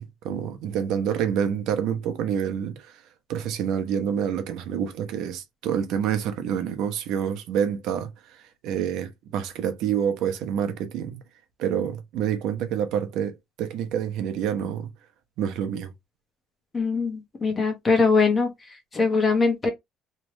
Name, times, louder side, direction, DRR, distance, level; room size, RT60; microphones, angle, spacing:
voice 1, 0.0-3.0 3.3-11.2 11.6-14.9 15.4-15.9, right 8 dB, 65° right, 0.8 m, -27 dB
voice 2, 16.7-18.5 18.9-19.7, left 4 dB, 20° left, 1.2 m, -22 dB
3.3 x 3.3 x 3.0 m
cardioid pair, 170°, 0 cm